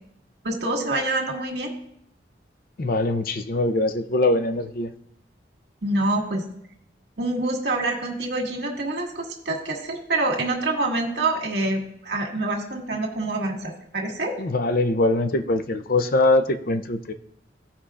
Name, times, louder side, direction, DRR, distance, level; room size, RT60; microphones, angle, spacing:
voice 1, 0.4-1.7 5.8-6.4 7.2-14.4, right 2 dB, 70° right, 0 dB, 1.9 m, -26 dB
voice 2, 2.8-4.9 14.4-17.1, left 2 dB, 50° left, 9 dB, 0.6 m, -22 dB
16.0 x 5.4 x 2.5 m, 0.72 s
head